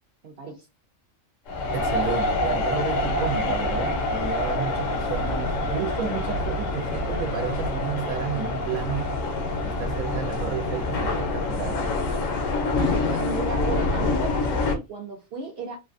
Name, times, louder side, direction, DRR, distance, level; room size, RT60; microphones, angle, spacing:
voice 1, 0.2-0.7 3.3-3.6 5.0-5.1 5.4-5.5 12.8-15.8, right 3 dB, 60° right, 0.7 m, -34 dB
sound 1, 1.5-14.8, left 2 dB, 75° left, 0.9 m, -26 dB
voice 2, 1.7-9.1 9.6-11.8, right 9 dB, 80° right, 1.0 m, -32 dB
3.2 x 2.2 x 2.5 m
omnidirectional pair, 1.4 m